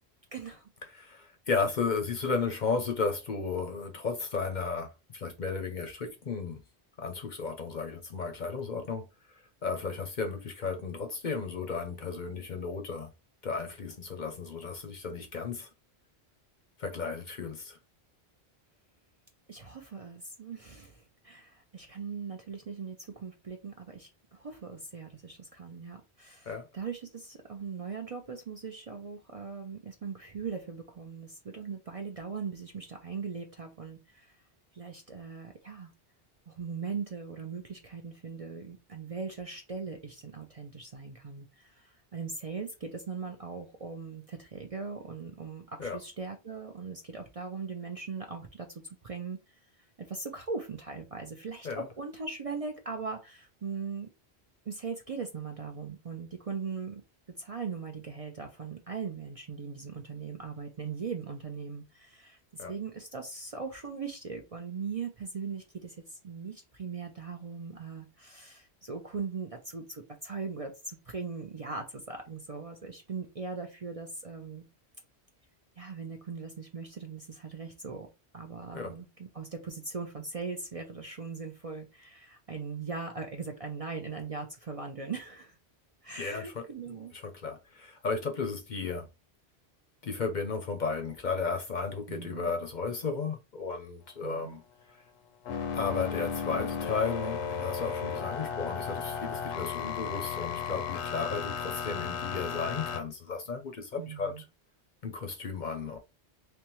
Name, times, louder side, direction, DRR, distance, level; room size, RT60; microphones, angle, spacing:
voice 1, 0.3-0.7 19.5-34.3 34.7-35.9 36.5-49.4 50.0-54.1 54.7-57.0 57.4-74.6 75.8-78.1 78.3-85.6 86.0-87.1 92.1-92.5 94.2-94.6 104.0-104.4, right 5 dB, 40° right, 0.6 m, -40 dB
voice 2, 0.9-6.6 7.0-9.1 9.3-13.1 13.4-15.7 16.8-17.8 26.5-26.7 45.8-46.0 51.6-51.9 62.6-62.7 78.7-78.9 86.2-89.1 90.0-94.6 94.9-95.0 95.7-104.4 105.0-106.0, left 4 dB, 50° left, 0.7 m, -34 dB
sound 1, 95.5-103.0, left 6 dB, 85° left, 0.9 m, -34 dB
3.5 x 3.2 x 3.0 m
omnidirectional pair, 1.1 m